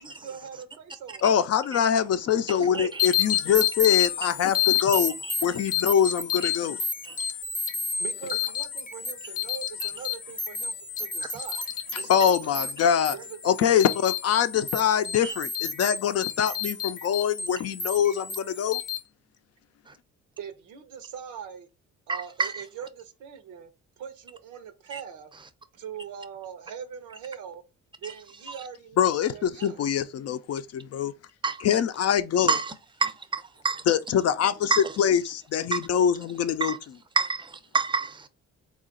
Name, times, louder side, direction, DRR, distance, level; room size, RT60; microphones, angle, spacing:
voice 1, 0.0-1.3 2.7-2.9 8.0-11.7 11.9-12.4 13.1-13.6 20.4-21.7 22.1-23.7 24.0-25.3 25.7-27.6 28.0-29.8, right 8 dB, 85° right, 0.8 m, -41 dB
voice 2, 1.2-5.1 5.4-6.8 12.1-13.2 13.4-18.8 29.0-31.1 31.6-32.6 33.9-36.7, left 8 dB, 55° left, 0.5 m, -24 dB
sound 1, 3.0-19.0, left 8 dB, 25° left, 0.8 m, -30 dB
voice 3, 22.1-22.6 24.9-25.0 31.4-31.7 32.5-32.7 33.0-33.1 33.6-33.8 34.7-34.9 35.7-35.8 36.6-36.8 37.2-38.3, right 4 dB, 15° right, 0.5 m, -27 dB
3.8 x 2.4 x 3.7 m
cardioid pair, 90°, 30 cm